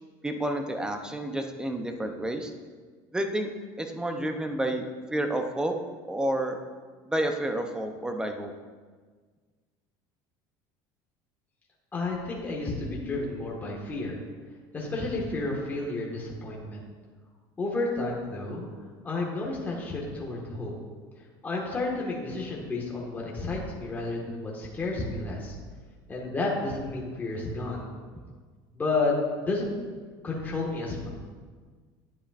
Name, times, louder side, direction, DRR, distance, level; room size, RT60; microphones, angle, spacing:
voice 1, 0.2-2.5 3.1-3.5 3.8-5.8 6.1-6.6 7.1-8.5, right 1 dB, 5° right, 5 dB, 0.7 m, -30 dB
voice 2, 11.9-14.2 14.7-16.8 17.6-18.7 19.0-20.7 21.4-25.5 26.1-27.8 28.7-29.7 30.2-31.1, left 3 dB, 15° left, -3 dB, 1.6 m, -31 dB
10.0 x 8.5 x 2.5 m, 1.5 s
cardioid pair, 135°, 10 cm